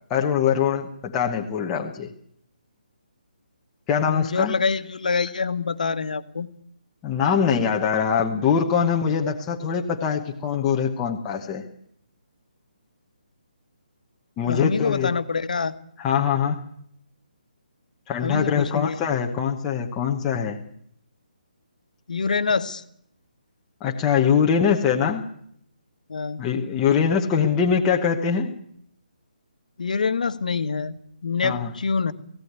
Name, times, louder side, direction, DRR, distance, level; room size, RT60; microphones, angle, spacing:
voice 1, 0.1-2.1 3.9-4.5 7.0-11.6 14.4-15.1 16.0-16.6 18.1-20.6 23.8-25.2 26.4-28.5 31.4-31.7, left 7 dB, 10° left, 0 dB, 0.9 m, -23 dB
voice 2, 4.1-6.5 14.5-15.7 18.2-19.0 22.1-22.8 26.1-26.4 29.8-32.1, left 5 dB, 55° left, 11 dB, 1.4 m, -25 dB
18.0 x 16.5 x 9.5 m, 0.69 s
hypercardioid pair, 180°, 5 cm